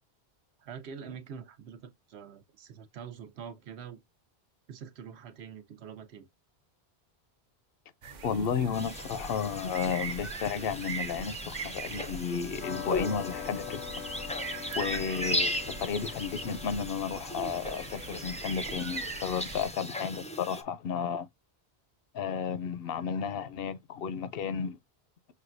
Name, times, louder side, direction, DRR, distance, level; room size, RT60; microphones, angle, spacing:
voice 1, 0.6-4.0 4.7-6.3, right 7 dB, 85° right, 1.0 m, -45 dB
sound 1, 8.0-19.7, right 5 dB, 50° right, 0.7 m, -42 dB
voice 2, 8.2-13.9 14.8-21.3 22.1-24.8, left 7 dB, 70° left, 0.7 m, -33 dB
sound 2, 8.7-20.6, left 1 dB, 10° left, 0.4 m, -37 dB
sound 3, 12.6-19.9, left 9 dB, 90° left, 1.0 m, -45 dB
6.4 x 2.2 x 2.5 m
omnidirectional pair, 1.1 m